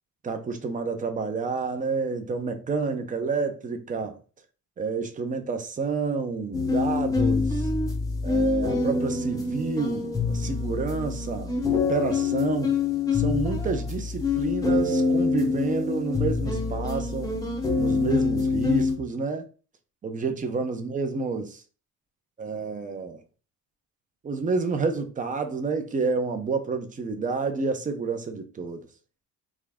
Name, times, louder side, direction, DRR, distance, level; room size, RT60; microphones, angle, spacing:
voice 1, 0.2-4.2 4.8-7.7 8.2-12.7 13.1-17.3 17.8-19.5 20.0-21.6 22.4-23.2 24.2-28.9, right 4 dB, 25° right, 0.6 m, -29 dB
sound 1, 6.5-19.0, left 4 dB, 10° left, 0.8 m, -25 dB
3.6 x 3.1 x 3.5 m
cardioid pair, 150°, 31 cm